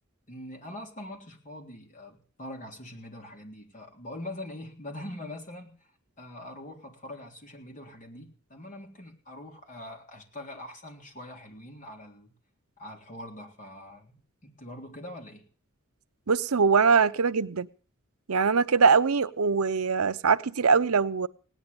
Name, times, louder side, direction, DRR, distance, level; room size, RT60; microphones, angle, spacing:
voice 1, 0.3-5.7 6.2-12.3 12.8-15.4, left 1 dB, 35° left, 2 dB, 3.6 m, -43 dB
voice 2, 16.3-17.7 18.3-21.3, right 5 dB, 80° right, 13 dB, 0.7 m, -22 dB
18.0 x 10.5 x 6.9 m, 0.40 s
head